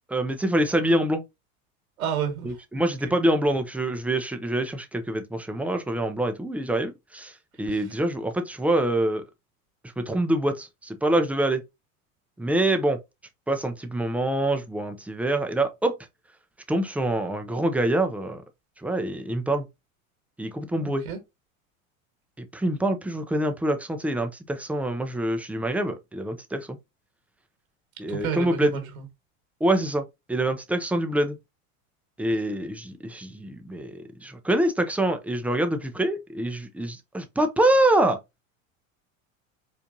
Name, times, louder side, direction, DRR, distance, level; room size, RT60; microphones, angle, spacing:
voice 1, 0.1-1.2 2.4-7.3 7.6-9.2 10.0-11.6 12.4-13.0 13.5-15.9 16.7-18.4 18.8-19.7 20.4-21.0 22.4-26.7 28.0-28.7 29.6-31.4 32.2-38.2, right 1 dB, 5° right, 0.5 m, -25 dB
voice 2, 2.0-2.6 3.0-3.1 20.8-21.2 28.1-29.0, right 8 dB, 90° right, 1.5 m, -30 dB
4.4 x 2.5 x 2.6 m
hypercardioid pair, 90°, 41 cm